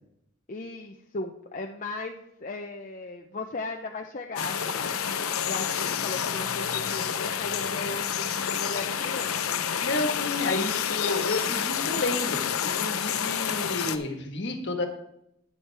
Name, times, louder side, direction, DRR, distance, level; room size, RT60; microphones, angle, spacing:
voice 1, 0.5-4.9 5.4-9.6 10.4-10.9, left 2 dB, 35° left, 3 dB, 0.6 m, -37 dB
sound 1, 4.4-14.0, left 8 dB, 80° left, 0.7 m, -29 dB
voice 2, 9.8-14.9, left 2 dB, 55° left, 4 dB, 1.5 m, -31 dB
11.5 x 9.4 x 3.4 m, 0.79 s
head